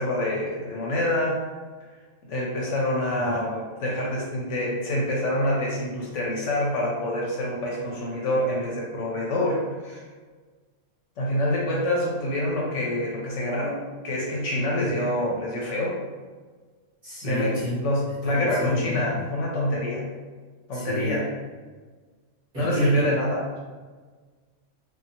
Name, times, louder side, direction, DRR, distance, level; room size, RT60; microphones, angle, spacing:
voice 1, 0.0-1.4 2.3-10.0 11.2-13.8 14.0-16.0 17.2-20.1 20.7-21.3 22.6-23.4, left 1 dB, 70° left, -3 dB, 0.8 m, -26 dB
voice 2, 17.0-17.7 18.3-19.0 20.7-21.2 22.5-23.2, left 1 dB, 40° right, -9 dB, 0.9 m, -29 dB
2.7 x 2.3 x 2.7 m, 1.4 s
omnidirectional pair, 1.5 m